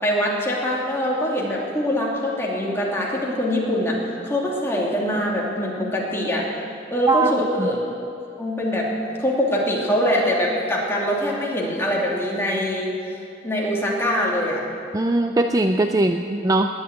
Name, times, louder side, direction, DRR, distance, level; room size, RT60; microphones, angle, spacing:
voice 1, 0.0-6.5 6.9-8.1 8.4-8.9 9.2-14.6, equal, 15° left, -4 dB, 2.7 m, -23 dB
voice 2, 14.9-16.7, right 2 dB, 20° right, 6 dB, 0.4 m, -20 dB
20.0 x 7.3 x 9.4 m, 2.6 s
head